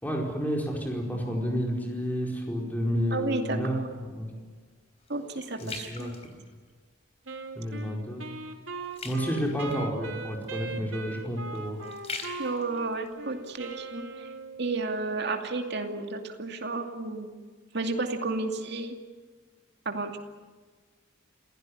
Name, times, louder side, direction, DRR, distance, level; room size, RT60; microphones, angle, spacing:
voice 1, 0.0-4.3 5.6-6.1 7.5-8.3 9.0-11.8, equal, 10° left, 0 dB, 4.7 m, -30 dB
voice 2, 3.1-3.9 5.1-6.1 12.4-14.3 14.6-17.4 17.7-19.0 19.9-20.2, right 3 dB, 60° right, 5 dB, 2.5 m, -32 dB
sound 1, 4.3-7.0 7.5-7.8 8.1-14.1 14.6-14.7, left 4 dB, 35° left, 3.8 m, -44 dB
Wind instrument woodwind instrument, 7.3-14.7, right 3 dB, 90° right, 2.7 m, -40 dB
27.5 x 16.5 x 9.9 m, 1.5 s
head